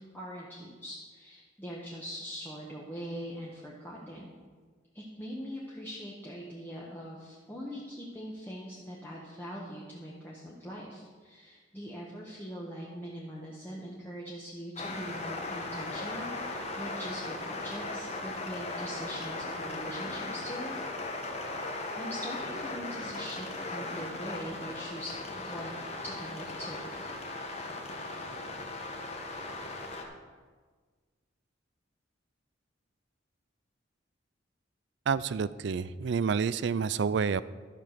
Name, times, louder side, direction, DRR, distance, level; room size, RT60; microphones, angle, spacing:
voice 1, 0.1-4.3 4.9-20.7 22.0-25.7 26.0-27.1, equal, 10° left, -5 dB, 1.2 m, -42 dB
sound 1, 14.8-30.0, left 2 dB, 35° left, 1.2 m, -38 dB
voice 2, 35.1-37.4, right 6 dB, 60° right, 17 dB, 0.4 m, -29 dB
12.5 x 5.9 x 6.6 m, 1.5 s
head